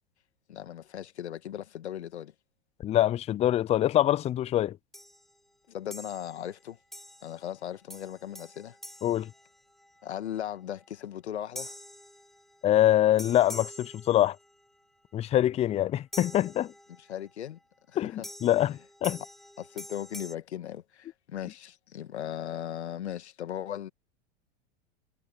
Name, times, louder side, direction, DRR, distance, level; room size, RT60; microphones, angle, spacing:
voice 1, 0.5-2.3 5.7-6.8 7.2-8.8 10.0-11.7 17.1-17.6 17.9-18.3 19.6-23.9, left 10 dB, 85° left, 2.0 m, -38 dB
voice 2, 2.8-4.8 9.0-9.3 12.6-14.4 15.1-16.7 18.0-19.2, left 13 dB, 20° left, 0.4 m, -24 dB
sound 1, 4.9-5.3 5.9-6.5 6.9-7.5 7.9-10.0 11.6-12.7 13.2-14.6 16.1-17.2 18.2-20.3, equal, ahead, 3.5 m, -46 dB
hypercardioid pair, 105°, 32 cm